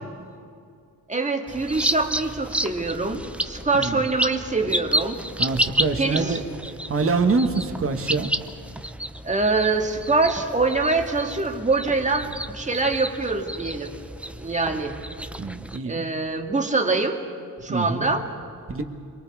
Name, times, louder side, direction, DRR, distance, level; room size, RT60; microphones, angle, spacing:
voice 1, 1.1-5.2 6.0-6.4 9.2-13.9 14.4-15.0 15.9-17.2 17.6-18.3, right 3 dB, 20° right, 3 dB, 2.0 m, -24 dB
sound 1, 1.5-15.8, right 1 dB, 5° right, 0.6 m, -31 dB
voice 2, 5.4-6.4 6.9-8.3 15.4-16.0 17.7-18.1 18.7-18.8, right 4 dB, 35° right, 5 dB, 1.5 m, -25 dB
28.5 x 23.5 x 4.8 m, 2.2 s
cardioid pair, 130°, 39 cm